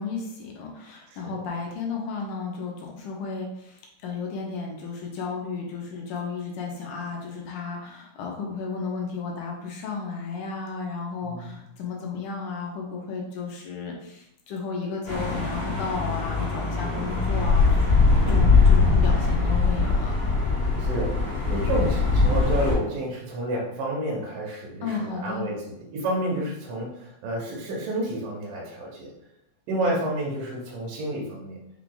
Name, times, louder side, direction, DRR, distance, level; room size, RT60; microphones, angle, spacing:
voice 1, 0.0-17.9 18.3-20.2 24.8-25.5, left 4 dB, 75° left, 0 dB, 2.0 m, -33 dB
voice 2, 11.2-11.5 16.9-17.2 18.2-18.5 20.8-29.1 29.7-31.7, right 1 dB, 75° right, -4 dB, 2.5 m, -30 dB
sound 1, 15.1-22.8, left 4 dB, 55° left, 1.0 m, -21 dB
5.9 x 2.3 x 3.8 m, 0.81 s
omnidirectional pair, 4.1 m